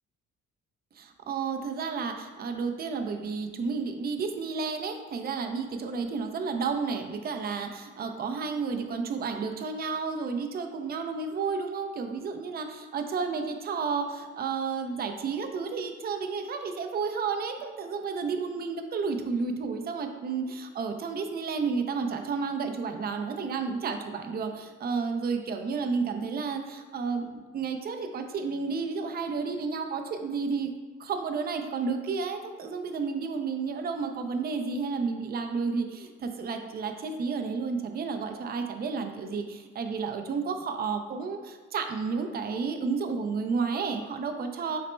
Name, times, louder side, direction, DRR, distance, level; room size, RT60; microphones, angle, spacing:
voice 1, 1.0-30.7 31.0-44.8, right 5 dB, 30° right, 6 dB, 0.4 m, -31 dB
4.0 x 2.1 x 4.3 m, 1.4 s
cardioid pair, 90°, 30 cm